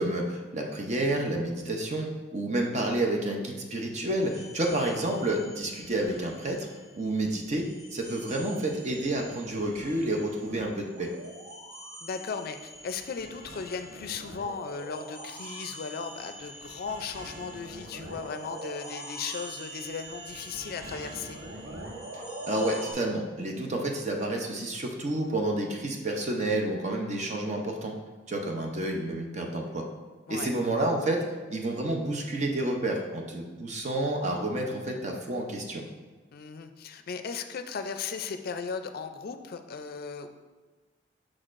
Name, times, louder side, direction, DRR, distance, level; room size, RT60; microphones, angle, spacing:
voice 1, 0.0-6.7 6.9-11.1 22.1-27.9 28.3-29.8 30.3-31.2 31.5-35.8, right 1 dB, 40° right, 2 dB, 0.6 m, -30 dB
sound 1, 4.2-7.0 7.3-22.9, right 1 dB, 80° right, 1.6 m, -44 dB
voice 2, 12.0-21.4 30.3-30.5 36.3-40.3, left 5 dB, 55° left, 8 dB, 0.4 m, -37 dB
6.3 x 6.1 x 2.5 m, 1.3 s
head